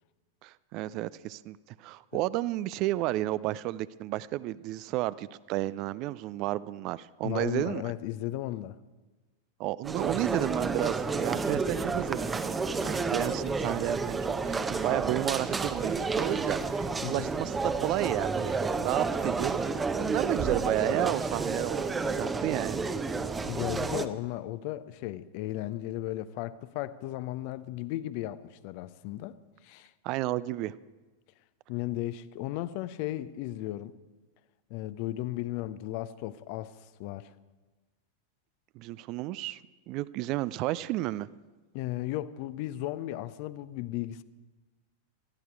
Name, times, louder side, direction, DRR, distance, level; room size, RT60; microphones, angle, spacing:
voice 1, 0.4-7.9 9.6-19.6 20.0-22.9 30.0-30.7 38.8-39.6 39.9-41.3, right 16 dB, 40° right, 0.4 m, -32 dB
voice 2, 7.2-8.8 17.0-17.3 23.5-29.3 29.6-29.9 31.7-33.9 34.7-37.3 41.7-44.2, left 15 dB, 45° left, 0.6 m, -35 dB
sound 1, 9.8-24.1, right 4 dB, 15° right, 0.8 m, -30 dB
20.5 x 13.5 x 4.7 m
figure-of-eight pair, 90°, 0 cm